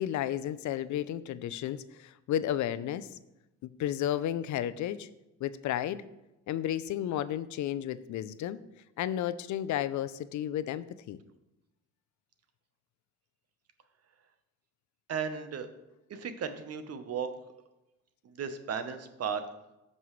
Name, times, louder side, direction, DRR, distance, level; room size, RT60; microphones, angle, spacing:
voice 1, 0.0-3.1 3.6-5.1 5.4-6.0 6.5-8.6 9.0-11.2, left 11 dB, 70° left, 15 dB, 0.5 m, -32 dB
voice 2, 15.1-15.7 16.1-17.3 18.3-19.4, right 7 dB, 55° right, 9 dB, 1.0 m, -35 dB
14.0 x 5.4 x 3.2 m, 0.96 s
cardioid pair, 90°, 30 cm